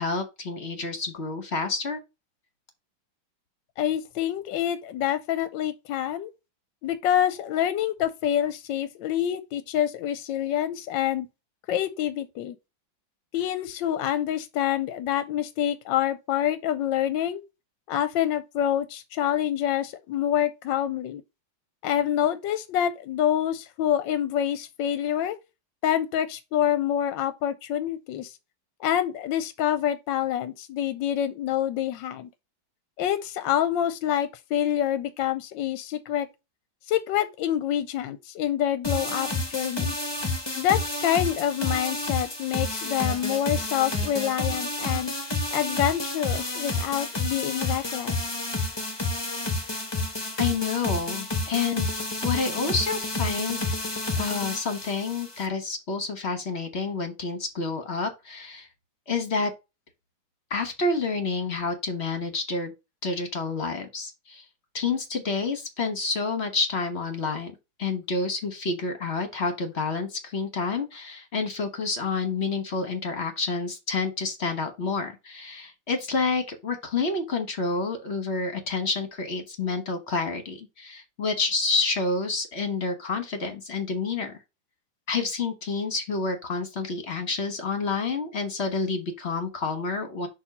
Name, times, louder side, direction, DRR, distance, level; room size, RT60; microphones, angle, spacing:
voice 1, 0.0-2.0 50.4-53.7 54.2-58.7 59.1-59.5 60.5-62.7 63.0-64.4 64.7-67.5 67.8-84.3 85.1-90.3, left 4 dB, 40° left, 1.1 m, -29 dB
voice 2, 3.8-6.3 6.8-11.3 11.7-12.6 13.3-17.4 17.9-21.2 21.8-25.4 25.8-28.3 28.8-32.3 33.0-36.3 36.9-40.0 40.5-45.1 45.5-48.3, left 10 dB, 75° left, 1.2 m, -26 dB
sound 1, 38.8-55.5, left 2 dB, 25° left, 0.6 m, -30 dB
6.4 x 2.9 x 5.2 m
omnidirectional pair, 2.2 m